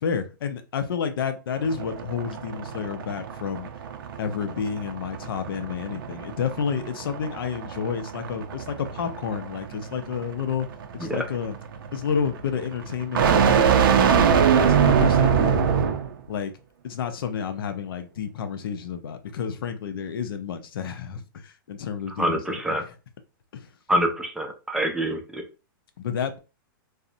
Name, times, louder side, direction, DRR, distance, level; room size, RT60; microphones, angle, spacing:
voice 1, 0.0-3.7 4.2-10.7 10.9-11.6 11.9-15.7 16.3-16.5 16.8-22.9 23.5-23.7 26.0-26.4, left 7 dB, 80° left, 0.5 m, -30 dB
sound 1, 1.6-16.2, right 7 dB, 75° right, 0.4 m, -24 dB
voice 2, 22.2-22.8 23.9-25.4, right 1 dB, 5° right, 0.4 m, -26 dB
2.6 x 2.0 x 2.5 m
hypercardioid pair, 135°, 12 cm